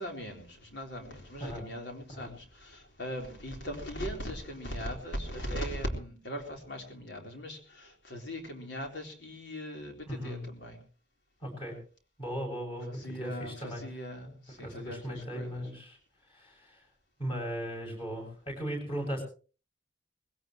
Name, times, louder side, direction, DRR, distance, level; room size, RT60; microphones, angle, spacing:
voice 1, 0.0-10.8 12.9-15.7, equal, 70° left, 2 dB, 4.0 m, -39 dB
voice 2, 10.1-10.5 11.4-11.8 12.2-13.8 14.6-16.0 16.3-16.8 17.2-19.2, equal, 30° left, 1 dB, 7.0 m, -37 dB
20.5 x 17.0 x 3.1 m, 0.38 s
head